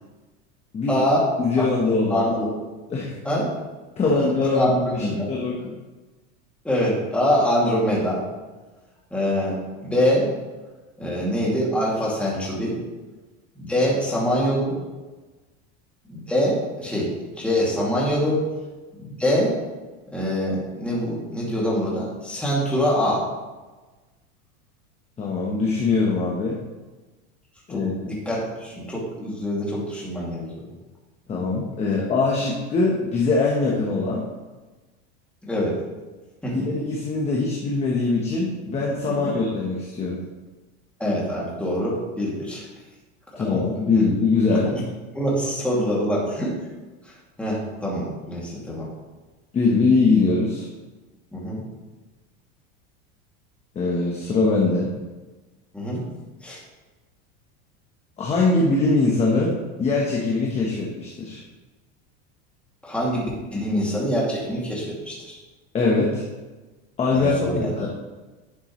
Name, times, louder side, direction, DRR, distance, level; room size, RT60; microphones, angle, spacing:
voice 1, 0.9-1.3 1.6-1.7 2.1-2.5 3.2-3.5 4.1-4.2 4.5-5.3 6.6-8.2 9.1-10.3 11.0-12.8 13.6-14.8 16.1-18.4 19.0-19.6 20.1-23.3 27.7-30.6 35.4-35.8 36.4-36.7 41.0-42.7 43.5-43.6 44.4-44.8 45.1-46.5 47.0-48.9 51.3-51.6 55.7-56.0 56.4-56.6 62.8-65.4 67.1-67.7, equal, 5° left, -6 dB, 2.5 m, -24 dB
voice 2, 1.4-2.3 2.9-3.1 4.0-5.7 25.2-26.6 27.7-27.9 31.3-34.2 36.5-40.2 43.4-44.7 49.5-50.7 53.7-54.9 58.2-59.5 59.8-61.4 65.7-66.2 67.0-67.9, left 3 dB, 20° left, -3 dB, 1.1 m, -22 dB
11.5 x 7.3 x 3.2 m, 1.2 s
supercardioid pair, 155°, 34 cm